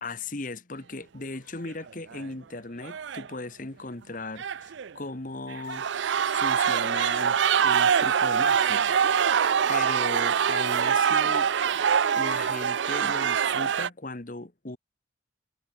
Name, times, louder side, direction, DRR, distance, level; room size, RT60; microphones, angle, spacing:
voice 1, 0.0-5.8 6.3-9.0 9.2-11.5 12.2-14.8, left 2 dB, 45° left, 1.4 m, -37 dB
sound 1, 1.7-1.9 2.1-2.2 2.8-3.3 4.4-4.9 5.5-13.9, right 7 dB, 70° right, 0.5 m, -24 dB
head